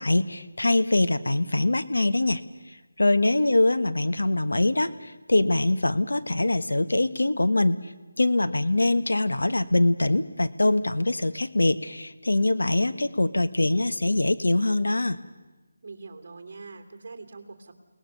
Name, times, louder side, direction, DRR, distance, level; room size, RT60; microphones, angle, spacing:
voice 1, 0.0-2.4 3.0-7.8 8.2-15.2, left 2 dB, 90° left, 11 dB, 1.4 m, -23 dB
voice 2, 15.8-17.7, right 4 dB, 40° right, 5 dB, 3.1 m, -43 dB
29.0 x 19.5 x 6.9 m, 1.2 s
figure-of-eight pair, 170°, 0 cm